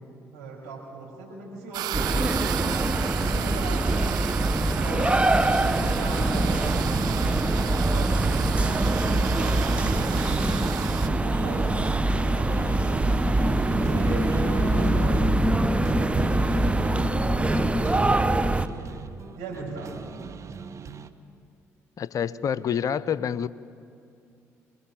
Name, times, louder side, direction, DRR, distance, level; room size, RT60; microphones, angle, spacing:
voice 1, 0.3-2.8 3.2-7.1 7.6-8.8 9.1-10.7 11.1-12.7 13.6-16.5 17.6-18.3 18.6-18.9 19.4-19.9, right 3 dB, 75° right, -2 dB, 6.6 m, -38 dB
sound 1, 1.7-11.1, right 14 dB, 55° right, 0.5 m, -35 dB
sound 2, 1.9-18.7, right 2 dB, 15° right, 1.0 m, -23 dB
sound 3, 5.5-21.1, right 6 dB, 40° right, 1.2 m, -42 dB
voice 2, 22.0-23.5, left 8 dB, 45° left, 17 dB, 0.8 m, -27 dB
26.0 x 21.0 x 8.0 m, 2.5 s
figure-of-eight pair, 50°, 8 cm